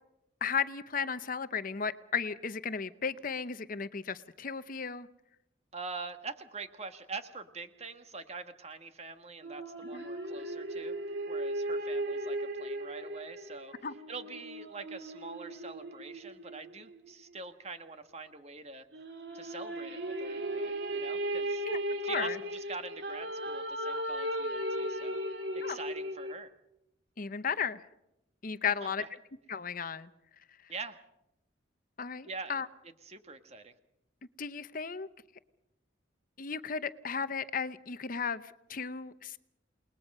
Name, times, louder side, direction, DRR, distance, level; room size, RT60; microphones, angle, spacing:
voice 1, 0.4-5.1 9.9-10.0 13.8-13.9 21.7-22.4 25.6-25.8 27.2-27.8 28.4-29.0 29.5-30.1 30.6-30.7 32.0-32.7 34.4-35.1 36.4-39.4, left 6 dB, 45° left, 13 dB, 0.8 m, -35 dB
voice 2, 5.7-11.0 11.3-13.7 14.1-18.9 19.3-21.6 22.0-25.2 25.5-26.5 28.8-29.1 30.7-31.0 32.2-32.5 33.0-33.7, right 4 dB, 35° right, 8 dB, 1.6 m, -44 dB
sound 1, 9.4-17.1 18.9-26.3, right 1 dB, 60° right, 2.7 m, -36 dB
29.0 x 20.5 x 5.5 m, 0.85 s
head